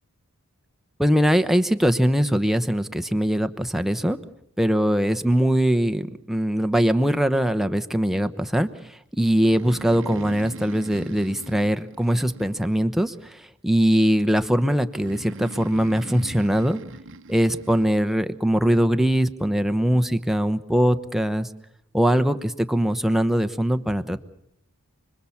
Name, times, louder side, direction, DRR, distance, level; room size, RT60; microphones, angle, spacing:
voice 1, 1.0-4.2 4.6-8.7 9.2-16.8 17.3-21.5 21.9-24.2, equal, ahead, 8 dB, 1.0 m, -21 dB
Breathing, 9.4-13.1 14.9-18.0, right 2 dB, 60° right, 1.0 m, -41 dB
30.0 x 21.5 x 7.2 m, 0.75 s
head